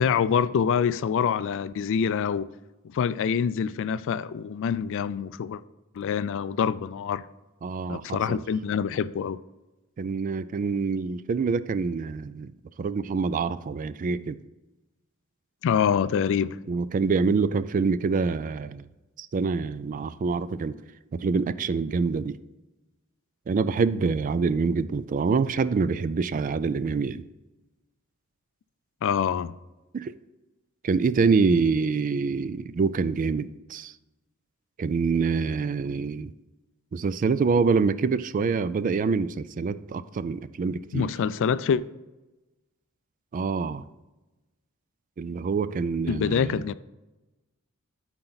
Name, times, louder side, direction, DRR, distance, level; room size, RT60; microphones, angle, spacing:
voice 1, 0.0-2.5 2.8-5.6 6.0-7.2 7.9-9.4 15.6-16.6 29.0-29.5 40.9-41.8 46.1-46.7, left 7 dB, 65° left, 0.3 m, -25 dB
voice 2, 7.6-8.4 10.0-12.5 12.8-14.4 16.7-18.8 19.2-20.8 21.1-22.4 23.5-27.2 29.9-30.2 30.8-33.9 34.8-36.3 36.9-41.1 43.3-43.9 45.2-46.6, right 4 dB, 40° right, 0.3 m, -26 dB
12.5 x 4.5 x 4.0 m
head